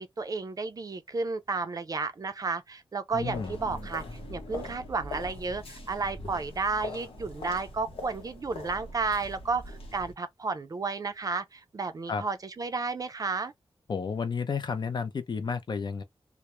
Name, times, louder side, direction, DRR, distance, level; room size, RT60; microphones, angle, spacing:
voice 1, 0.0-4.0 4.3-13.5, right 4 dB, 40° right, 0.4 m, -32 dB
sound 1, 3.1-10.1, left 2 dB, 80° left, 0.8 m, -42 dB
voice 2, 3.1-3.6 12.1-12.2 13.9-16.0, left 5 dB, 50° left, 0.5 m, -31 dB
2.1 x 2.0 x 2.9 m
wide cardioid pair, 130°, 10 cm